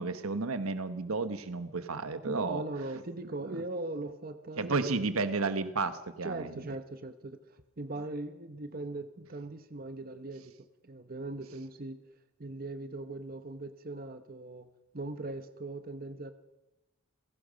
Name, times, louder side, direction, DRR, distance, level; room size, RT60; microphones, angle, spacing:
voice 1, 0.0-2.6 4.6-6.6, right 3 dB, 85° right, 11 dB, 1.2 m, -32 dB
voice 2, 2.2-5.1 6.2-10.5 10.8-12.0 12.4-14.7 14.9-16.3, right 2 dB, 45° right, 9 dB, 1.1 m, -40 dB
29.5 x 17.0 x 5.2 m, 0.97 s
head